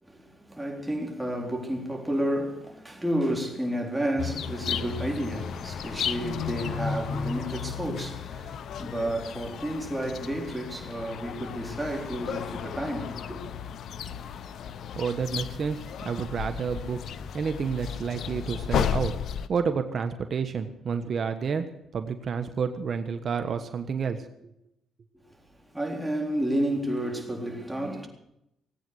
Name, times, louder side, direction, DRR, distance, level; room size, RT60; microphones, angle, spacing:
voice 1, 0.0-13.4 25.6-28.1, right 1 dB, 5° right, 3.9 m, -31 dB
sound 1, 4.2-19.5, left 7 dB, 70° left, 0.8 m, -34 dB
voice 2, 14.9-17.0 17.3-19.1 19.5-21.7 21.9-24.5, right 6 dB, 50° right, 1.3 m, -30 dB
18.5 x 9.0 x 8.0 m
cardioid pair, 90°, 0 cm